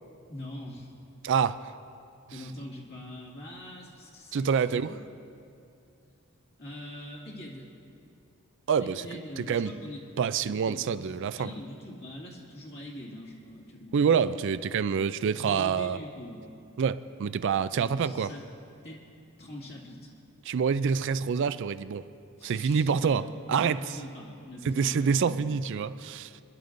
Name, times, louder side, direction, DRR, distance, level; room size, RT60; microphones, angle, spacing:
voice 1, 0.3-0.9 2.3-5.0 6.6-7.7 8.8-10.0 10.4-14.1 15.4-16.5 17.7-18.5 18.8-19.0 19.4-20.1 22.4-25.5, left 1 dB, 50° left, 2.2 m, -43 dB
voice 2, 1.2-1.7 4.3-4.9 8.7-9.1 9.4-9.7 10.2-11.5 13.9-16.0 16.8-18.3 20.4-22.0 22.4-23.8 24.6-26.3, right 6 dB, 55° right, 0.3 m, -27 dB
27.0 x 11.0 x 2.6 m
head